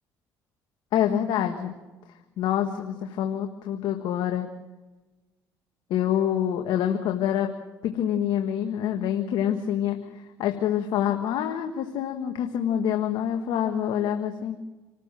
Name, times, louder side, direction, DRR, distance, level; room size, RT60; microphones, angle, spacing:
voice 1, 0.9-1.7 2.4-4.5 5.9-7.5 7.8-14.6, left 10 dB, 75° left, 5 dB, 1.6 m, -26 dB
27.0 x 13.5 x 7.5 m, 1.2 s
supercardioid pair, 70°, 8 cm